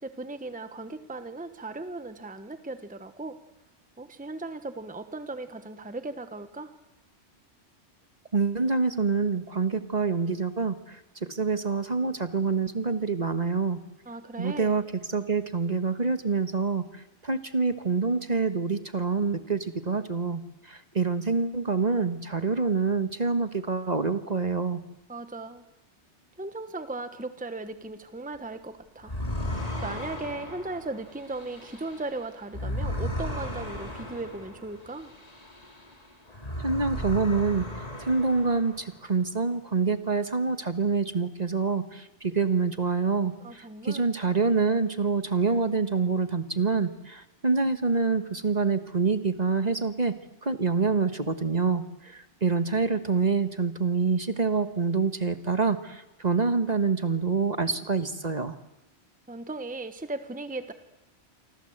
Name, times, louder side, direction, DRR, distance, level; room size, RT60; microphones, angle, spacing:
voice 1, 0.0-3.4 4.0-6.7 14.1-14.8 25.1-25.7 26.4-29.1 29.8-35.2 43.4-44.0 59.3-60.7, right 2 dB, 10° right, 10 dB, 1.1 m, -37 dB
voice 2, 8.3-13.8 14.4-24.8 36.6-37.7 38.0-50.1 50.4-58.5, right 4 dB, 35° right, 10 dB, 1.4 m, -26 dB
sound 1, 29.0-35.9 36.3-39.0, left 1 dB, 35° left, 3.6 m, -35 dB
28.0 x 24.5 x 8.0 m, 0.99 s
omnidirectional pair, 1.2 m